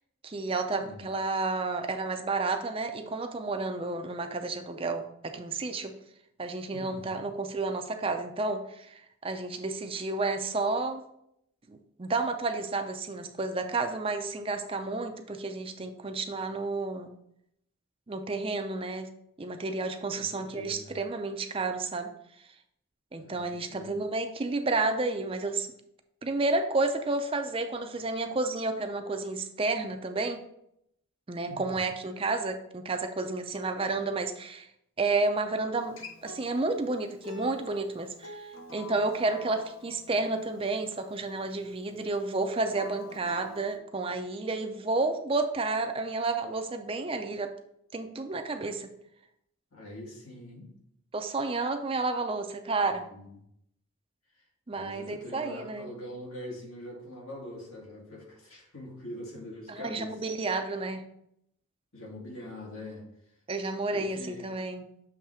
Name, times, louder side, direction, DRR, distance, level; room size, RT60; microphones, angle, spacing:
voice 1, 0.2-5.9 6.4-11.0 11.7-17.1 18.1-19.1 19.4-22.1 23.1-25.7 26.2-30.4 31.3-34.7 35.0-47.5 47.9-48.9 51.1-53.1 54.7-55.9 59.7-61.0 63.5-64.8, right 3 dB, 25° right, 7 dB, 0.5 m, -31 dB
voice 2, 6.7-7.3 20.1-21.0 23.2-24.0 31.4-31.8 49.7-50.7 52.8-53.4 54.7-60.2 61.9-63.0 63.9-64.5, left 1 dB, 85° left, -3 dB, 2.2 m, -44 dB
Acoustic guitar, 35.7-40.9 42.5-43.8, left 3 dB, 70° left, 0.9 m, -47 dB
7.1 x 3.3 x 4.8 m, 0.75 s
head